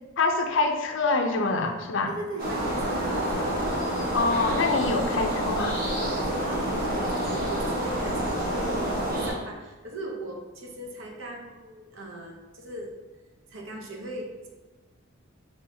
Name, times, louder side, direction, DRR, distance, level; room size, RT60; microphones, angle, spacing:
voice 1, 0.2-2.1 4.1-5.8, left 3 dB, 60° left, 5 dB, 0.5 m, -25 dB
voice 2, 2.1-3.6 6.2-12.9 13.5-14.5, right 1 dB, 65° right, 0 dB, 0.7 m, -39 dB
sound 1, 2.4-9.3, right 1 dB, 45° right, 1.0 m, -28 dB
5.5 x 3.0 x 2.7 m, 1.2 s
head